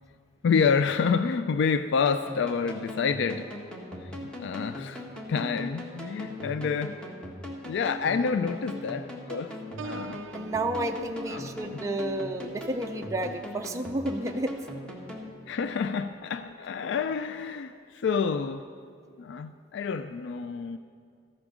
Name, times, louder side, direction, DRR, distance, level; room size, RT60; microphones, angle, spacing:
voice 1, 0.4-3.5 4.0-7.0 7.6-9.6 9.8-10.2 11.3-11.8 15.5-18.7 19.2-20.8, left 5 dB, 65° left, 11 dB, 0.3 m, -28 dB
sound 1, 2.1-15.3, left 1 dB, 5° left, 1.6 m, -40 dB
Piano, 9.8-15.4 15.9-16.2, right 3 dB, 75° right, 0.4 m, -47 dB
voice 2, 10.3-14.6, right 1 dB, 15° right, 3 dB, 0.5 m, -31 dB
14.0 x 8.6 x 6.1 m, 2.3 s
head